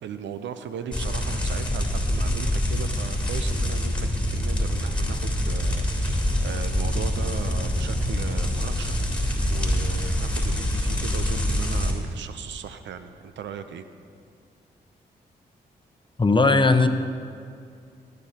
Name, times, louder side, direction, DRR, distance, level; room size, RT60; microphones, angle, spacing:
voice 1, 0.0-9.0 9.5-13.8, right 7 dB, 75° right, 10 dB, 0.6 m, -37 dB
sound 1, 0.9-11.9, left 1 dB, 5° left, 3.1 m, -25 dB
Organ, 5.9-11.7, right 1 dB, 45° right, 2.9 m, -46 dB
voice 2, 16.2-16.9, left 3 dB, 25° left, 7 dB, 0.9 m, -17 dB
17.0 x 9.5 x 2.9 m, 2.3 s
supercardioid pair, 40°, 19 cm